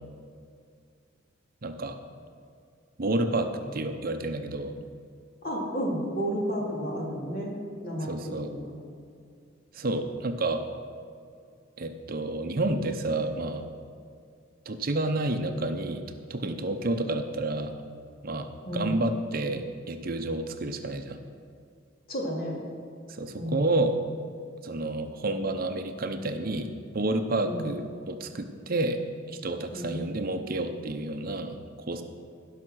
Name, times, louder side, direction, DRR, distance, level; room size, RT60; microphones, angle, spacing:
voice 1, 1.6-2.0 3.0-4.8 8.1-8.5 9.7-10.7 11.8-13.6 14.7-16.0 16.3-17.8 18.2-21.2 23.1-24.0 24.6-29.0 29.3-31.6 31.9-32.0, right 2 dB, 50° right, 7 dB, 0.7 m, -30 dB
voice 2, 5.4-7.6 7.8-8.7 18.6-19.0 22.1-22.6 23.3-23.7 27.4-27.7 29.7-30.0, equal, 50° left, -3 dB, 2.9 m, -32 dB
16.5 x 5.8 x 6.3 m, 2.3 s
head